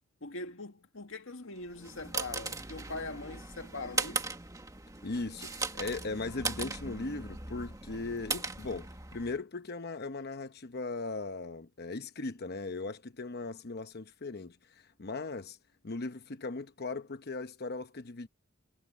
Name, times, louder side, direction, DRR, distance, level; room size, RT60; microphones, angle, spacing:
voice 1, 0.2-4.2, left 2 dB, 65° left, 2.1 m, -42 dB
sound 1, 1.6-9.4, right 3 dB, 15° right, 1.7 m, -38 dB
voice 2, 5.0-15.6 15.8-18.3, left 3 dB, 50° left, 0.9 m, -38 dB
head